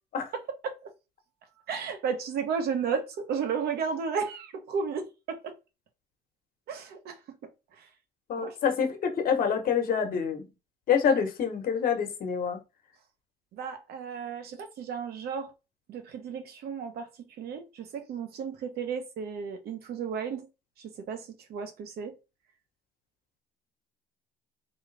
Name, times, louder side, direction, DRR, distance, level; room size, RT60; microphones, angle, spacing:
voice 1, 1.7-5.5 6.7-7.2 7.8-7.9 8.4-8.6 13.5-15.5 15.9-17.1 17.4-20.5 20.8-22.1, right 6 dB, 70° right, 1.1 m, -33 dB
voice 2, 8.3-10.5 10.9-12.6, left 7 dB, 55° left, 1.2 m, -26 dB
3.8 x 3.1 x 3.3 m
cardioid pair, 110°, 17 cm